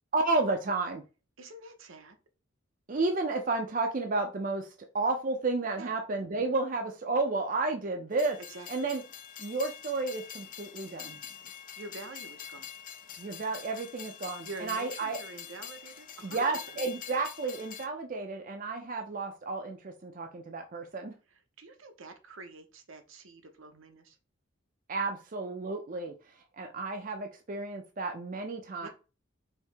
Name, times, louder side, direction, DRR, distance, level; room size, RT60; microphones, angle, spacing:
voice 1, 0.1-1.0 2.9-4.7 4.9-8.4 8.7-9.0 9.4-11.2 13.2-15.2 16.2-21.1 24.9-26.1 26.6-28.9, right 3 dB, 40° right, 0.5 m, -32 dB
voice 2, 1.4-2.2 5.8-5.9 8.5-8.9 11.8-12.7 14.4-16.8 21.3-24.2 28.8-28.9, right 3 dB, 75° right, 0.8 m, -47 dB
Train, 8.1-17.9, left 9 dB, 40° left, 0.5 m, -45 dB
4.5 x 2.8 x 3.4 m
head